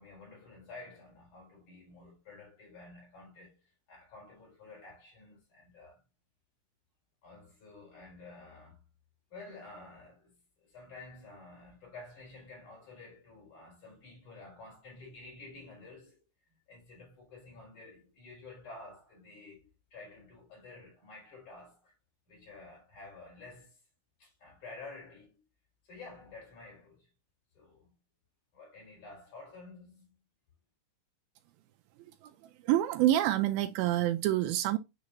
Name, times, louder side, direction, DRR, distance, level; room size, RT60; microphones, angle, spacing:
voice 1, 0.0-6.0 7.2-8.8 9.3-16.2 16.5-21.9 22.3-23.8 24.2-25.4 25.8-27.1 27.5-27.9 28.5-30.2, left 3 dB, 50° left, 6.0 m, -51 dB
voice 2, 32.2-34.8, right 13 dB, 80° right, 2.3 m, -27 dB
9.5 x 3.8 x 3.0 m
omnidirectional pair, 4.4 m